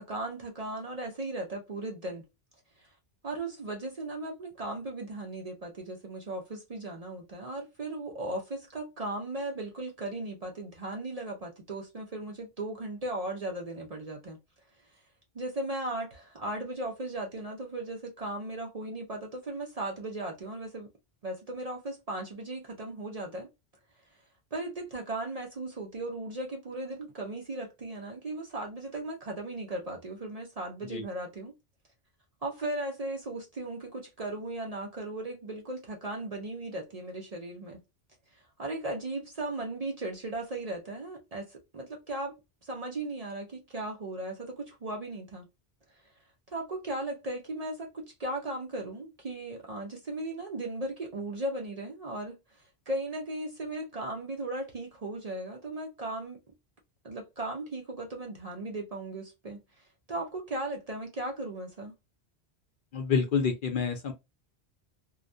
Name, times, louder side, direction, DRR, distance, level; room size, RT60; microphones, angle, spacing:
voice 1, 0.0-2.3 2.8-2.9 3.2-14.4 15.3-20.9 21.2-23.5 24.5-31.5 32.4-37.8 38.3-42.4 42.6-45.5 46.5-56.4 57.0-61.9, right 2 dB, 45° right, 0.6 m, -37 dB
voice 2, 62.9-64.1, left 5 dB, 60° left, 0.6 m, -28 dB
2.3 x 2.2 x 2.5 m
omnidirectional pair, 1.1 m